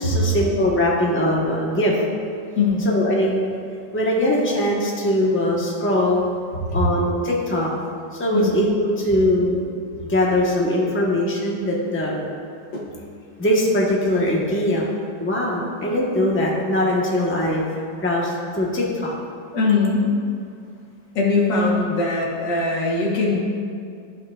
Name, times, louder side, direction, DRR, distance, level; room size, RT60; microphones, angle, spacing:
voice 1, 0.0-2.0 2.8-3.4 3.9-6.2 6.7-7.7 8.2-9.6 10.1-12.2 13.4-14.9 15.2-17.6 18.0-19.1, left 1 dB, 10° left, -4 dB, 0.9 m, -21 dB
voice 2, 2.6-2.9 6.5-6.8 8.3-8.6 12.7-12.9 19.5-20.1 21.2-23.4, left 3 dB, 75° left, -2 dB, 2.0 m, -21 dB
14.5 x 5.6 x 2.4 m, 2.4 s
omnidirectional pair, 1.9 m